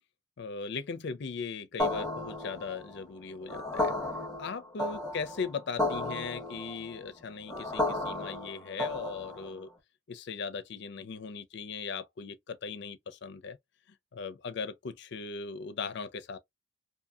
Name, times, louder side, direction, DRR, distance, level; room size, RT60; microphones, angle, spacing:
voice 1, 0.4-3.9 4.4-9.7 10.1-13.6 14.1-16.4, left 5 dB, 60° left, 0.5 m, -38 dB
sound 1, 1.8-9.6, left 2 dB, ahead, 1.1 m, -34 dB
2.6 x 2.6 x 2.4 m
head